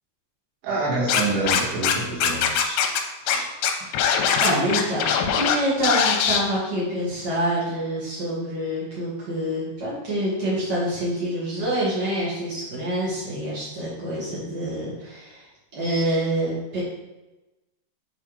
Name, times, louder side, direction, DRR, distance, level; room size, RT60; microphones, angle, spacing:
voice 1, 0.6-2.8 3.2-3.4, right 3 dB, 90° right, -6 dB, 4.4 m, -27 dB
Scratching (performance technique), 1.1-1.9 2.2-3.0 3.3-3.4 3.6-5.6 5.8-6.4, left 8 dB, 90° left, 3.0 m, -21 dB
voice 2, 4.4-15.5 15.7-16.8, right 1 dB, 55° right, -9 dB, 1.1 m, -26 dB
7.9 x 3.8 x 4.9 m, 1.1 s
omnidirectional pair, 5.4 m